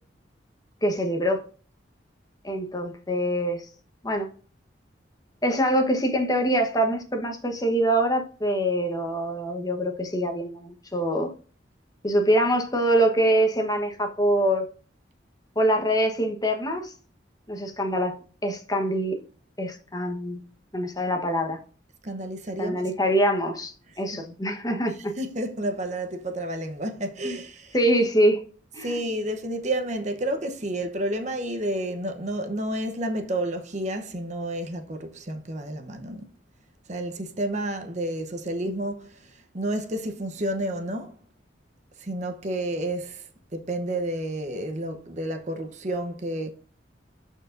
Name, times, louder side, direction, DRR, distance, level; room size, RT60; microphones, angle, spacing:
voice 1, 0.8-1.4 2.4-3.7 4.0-4.3 5.4-11.3 12.0-14.6 15.6-16.9 17.5-18.2 18.4-19.2 19.6-20.4 20.7-21.6 22.6-25.1 27.2-27.4 27.7-28.4 28.7-29.0, right 1 dB, 20° left, 1.1 m, -24 dB
voice 2, 22.0-22.8 24.1-24.3 25.2-27.8 28.8-36.3 36.9-41.2 42.0-46.5, right 1 dB, 40° right, 0.8 m, -30 dB
12.5 x 4.6 x 2.6 m
head